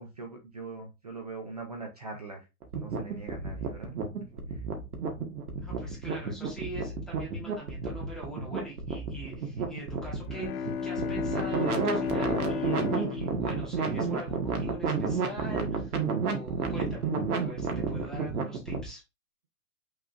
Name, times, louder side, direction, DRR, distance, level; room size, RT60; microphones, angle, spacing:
voice 1, 0.0-2.5 2.7-4.0 4.5-4.6, right 3 dB, 30° right, 3 dB, 0.4 m, -42 dB
sound 1, 2.6-18.9, right 4 dB, 75° right, 1.6 m, -31 dB
voice 2, 5.6-17.1 17.3-19.0, right 1 dB, ahead, -4 dB, 1.3 m, -43 dB
Bowed string instrument, 10.2-14.8, left 6 dB, 75° left, 0.8 m, -34 dB
5.8 x 3.7 x 2.5 m, 0.25 s
hypercardioid pair, 160°, 45 cm